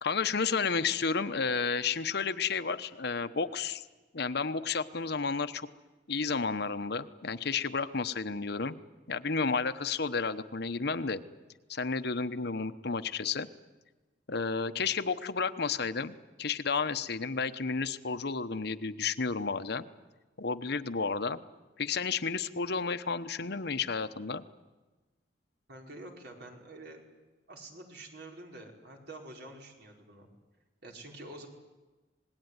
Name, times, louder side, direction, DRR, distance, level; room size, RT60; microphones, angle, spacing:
voice 1, 0.0-3.8 4.1-5.7 6.1-8.8 9.1-11.2 11.7-13.5 14.3-19.8 20.4-21.4 21.8-24.4, left 5 dB, 65° left, 11 dB, 1.0 m, -32 dB
voice 2, 25.7-27.0 27.5-30.3 30.8-31.5, right 2 dB, 65° right, 1 dB, 5.0 m, -47 dB
26.5 x 20.0 x 9.7 m, 1.2 s
head